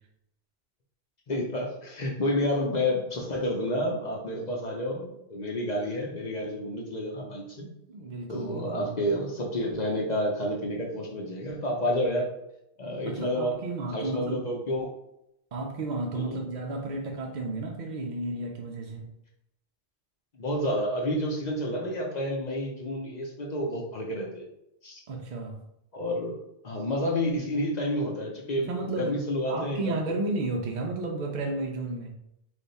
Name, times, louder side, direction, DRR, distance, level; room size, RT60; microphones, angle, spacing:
voice 1, 1.3-7.7 8.3-12.3 12.8-13.5 13.9-14.9 16.1-16.4 20.3-24.5 24.8-25.0 25.9-26.4 26.6-30.0, left 1 dB, 45° left, -1 dB, 0.7 m, -30 dB
voice 2, 7.9-9.0 13.0-14.5 15.5-19.1 25.1-25.6 28.6-29.2 29.5-32.2, right 2 dB, 60° right, 2 dB, 0.5 m, -33 dB
3.4 x 2.4 x 4.0 m, 0.81 s
omnidirectional pair, 1.2 m